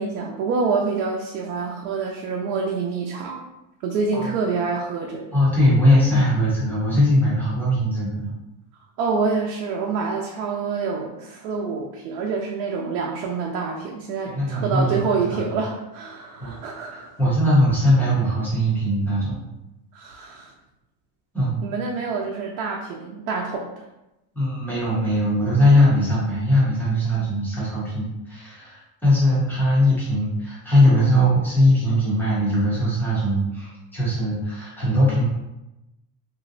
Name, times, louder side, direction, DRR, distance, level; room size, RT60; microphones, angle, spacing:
voice 1, 0.0-3.4 3.8-5.3 9.0-17.2 19.9-20.5 21.6-23.6, right 4 dB, 85° right, 0 dB, 0.6 m, -27 dB
voice 2, 5.3-8.3 14.2-15.6 16.4-16.6 17.2-19.4 21.3-21.6 24.3-35.3, equal, 5° left, -8 dB, 0.3 m, -20 dB
3.0 x 2.6 x 2.6 m, 0.94 s
cardioid pair, 175°, 46 cm